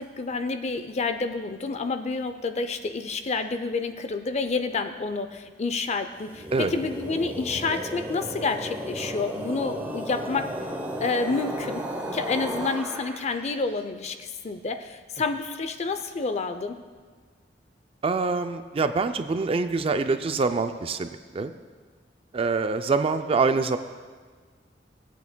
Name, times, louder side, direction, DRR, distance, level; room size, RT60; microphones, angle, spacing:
voice 1, 0.0-10.5 11.0-11.8 12.1-16.8, left 4 dB, 40° left, 9 dB, 0.5 m, -29 dB
sound 1, 6.2-13.6, right 1 dB, 10° right, 0.8 m, -34 dB
voice 2, 18.0-21.5 22.3-23.8, right 4 dB, 30° right, 9 dB, 0.4 m, -25 dB
16.5 x 8.1 x 2.2 m, 1.5 s
head